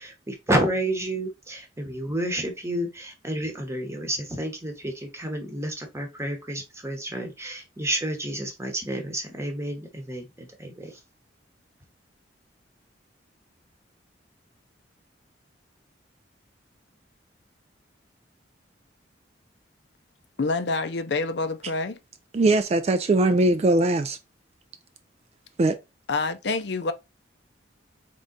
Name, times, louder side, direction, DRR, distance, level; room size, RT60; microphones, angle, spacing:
voice 1, 0.0-11.0, right 1 dB, 15° right, 1.0 m, -30 dB
voice 2, 20.4-22.0 26.1-26.9, left 3 dB, 65° left, 0.5 m, -27 dB
voice 3, 22.3-24.2 25.6-25.8, right 2 dB, 35° right, 0.3 m, -20 dB
3.7 x 3.5 x 3.8 m
head